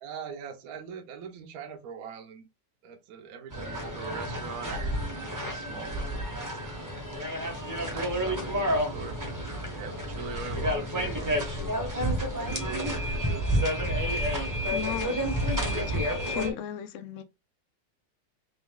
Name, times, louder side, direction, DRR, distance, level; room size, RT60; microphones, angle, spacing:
voice 1, 0.0-2.5 2.8-6.9 7.8-9.2 9.7-11.3 11.9-12.1 12.4-13.6, right 6 dB, 65° right, 0.9 m, -42 dB
sound 1, 3.5-16.5, equal, 15° right, 0.6 m, -30 dB
voice 2, 14.7-16.0 16.3-17.2, left 9 dB, 75° left, 0.6 m, -36 dB
3.9 x 2.9 x 3.6 m
omnidirectional pair, 1.9 m